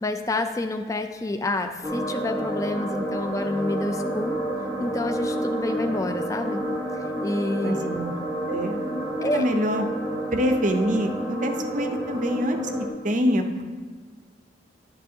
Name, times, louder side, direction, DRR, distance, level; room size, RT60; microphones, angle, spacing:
voice 1, 0.0-4.4 4.8-6.6 7.2-7.9 9.2-9.5, left 2 dB, 15° left, 6 dB, 0.4 m, -28 dB
sound 1, 1.8-12.9, right 1 dB, 20° right, 1.1 m, -30 dB
voice 2, 7.6-8.1 8.5-9.9 10.3-12.6 13.0-13.5, equal, 40° right, 6 dB, 0.6 m, -25 dB
11.5 x 6.8 x 2.8 m, 1.5 s
head